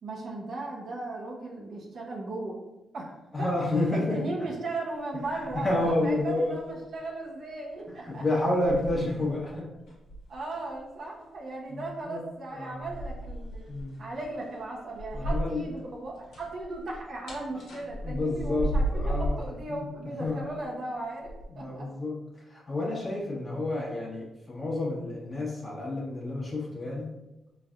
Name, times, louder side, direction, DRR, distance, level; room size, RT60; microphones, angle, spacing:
voice 1, 0.0-2.6 2.9-3.5 3.9-8.2 10.3-13.6 14.0-21.9, right 2 dB, 65° right, -3 dB, 0.8 m, -37 dB
voice 2, 3.3-4.2 5.6-6.6 8.0-9.7 11.7-11.8 12.0-12.2 12.5-12.8 13.7-14.0 15.1-15.6 18.0-19.4 19.7-19.9 20.2-20.5 21.5-22.2 22.5-27.1, left 2 dB, 35° left, -6 dB, 1.0 m, -29 dB
sound 1, 5.2-6.3 6.6-6.9 7.7-7.8 8.4-9.5 9.8-10.8 12.8-15.8 16.1-19.5 20.2-20.7 21.2-21.4, right 1 dB, 85° left, 1.1 m, -34 dB
4.0 x 3.2 x 2.4 m, 0.97 s
cardioid pair, 80°, 0 cm